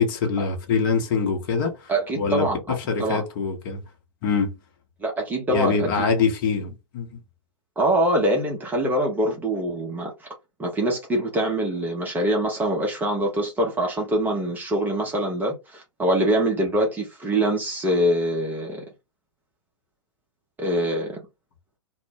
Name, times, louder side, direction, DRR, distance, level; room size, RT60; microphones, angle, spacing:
voice 1, 0.0-3.8 4.2-4.5 5.5-7.1, left 5 dB, 40° left, 0.8 m, -24 dB
voice 2, 1.9-3.2 5.0-6.1 7.8-10.3 10.6-18.8 20.6-21.2, right 1 dB, 10° right, 0.5 m, -24 dB
2.0 x 2.0 x 3.2 m
figure-of-eight pair, 105°, 16 cm